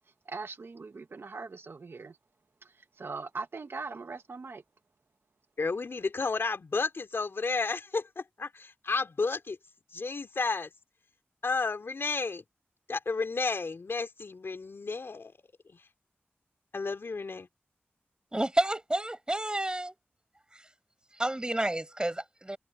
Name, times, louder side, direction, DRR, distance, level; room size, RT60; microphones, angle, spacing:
voice 1, 0.3-2.1 3.0-4.6, right 4 dB, 70° right, 1.1 m, -40 dB
voice 2, 5.6-9.6 9.9-10.7 11.4-12.4 12.9-15.3 15.7-15.8 16.7-17.5, left 4 dB, 70° left, 3.3 m, -32 dB
voice 3, 18.3-19.9 20.5-20.7 21.1-22.6, right 1 dB, 20° right, 7.0 m, -30 dB
wide cardioid pair, 65°, 4 cm